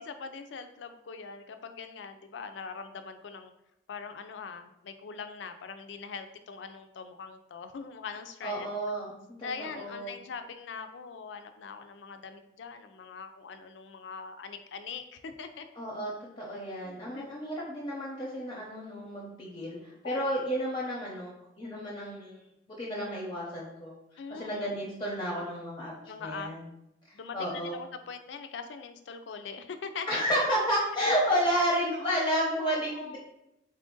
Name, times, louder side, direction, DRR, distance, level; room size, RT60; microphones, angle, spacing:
voice 1, 0.0-3.5 3.9-8.7 9.4-15.7 16.8-17.6 20.0-20.3 24.2-24.6 26.1-26.5 27.1-30.2 32.6-33.2, left 5 dB, 80° left, 8 dB, 0.4 m, -42 dB
voice 2, 8.4-10.2 15.8-16.1 16.4-22.4 22.8-24.0 24.3-25.9 26.2-26.6 27.3-27.7 30.1-33.2, equal, 25° left, -5 dB, 0.7 m, -31 dB
4.1 x 2.5 x 3.7 m, 0.83 s
head